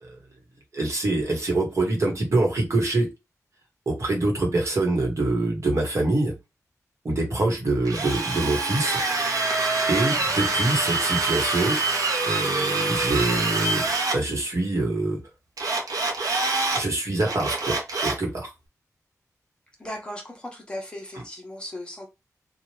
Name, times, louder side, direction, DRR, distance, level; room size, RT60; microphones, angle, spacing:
voice 1, 0.7-3.1 3.9-6.3 7.0-9.0 9.9-11.8 12.3-13.8 14.1-15.2 16.7-18.5, right 2 dB, 55° right, 1.3 m, -25 dB
Drill, 7.8-14.2 15.6-16.8 17.2-18.2, right 3 dB, 80° right, 0.9 m, -25 dB
voice 2, 19.8-22.1, left 1 dB, 15° left, 1.1 m, -37 dB
2.9 x 2.5 x 3.2 m
wide cardioid pair, 120°, 6 cm